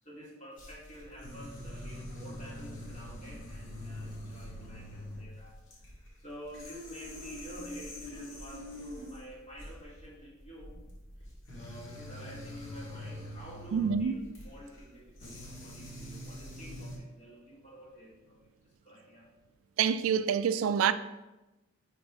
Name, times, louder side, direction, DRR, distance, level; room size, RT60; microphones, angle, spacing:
voice 1, 0.0-10.9 11.2-11.3 11.5-19.3, equal, 35° left, 1.9 m, -49 dB
sound 1, 0.6-17.0, left 1 dB, 65° left, 2.2 m, -45 dB
voice 2, 13.7-14.1 19.8-20.9, right 7 dB, 85° right, 0.3 m, -26 dB
5.2 x 4.6 x 4.7 m
head